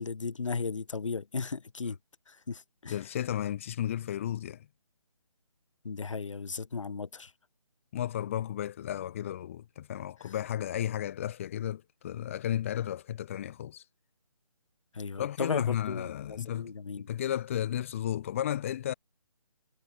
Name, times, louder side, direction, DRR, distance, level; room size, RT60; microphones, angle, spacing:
voice 1, 0.0-2.0 2.3-3.0 5.8-7.3 10.2-10.3 14.9-17.1, left 4 dB, 60° left, 2.2 m, -36 dB
voice 2, 2.9-4.7 7.9-13.9 15.2-16.7 17.0-18.9, left 11 dB, 25° left, 3.7 m, -33 dB
hypercardioid pair, 170°, 18 cm